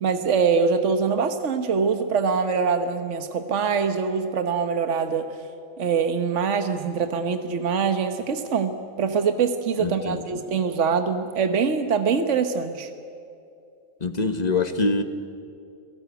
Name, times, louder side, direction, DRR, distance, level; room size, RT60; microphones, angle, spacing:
voice 1, 0.0-5.3 5.8-12.9, right 5 dB, 65° right, 8 dB, 1.4 m, -24 dB
voice 2, 9.8-10.2 14.0-15.0, left 3 dB, 30° left, 8 dB, 1.4 m, -24 dB
29.0 x 17.5 x 8.2 m, 2.5 s
omnidirectional pair, 1.4 m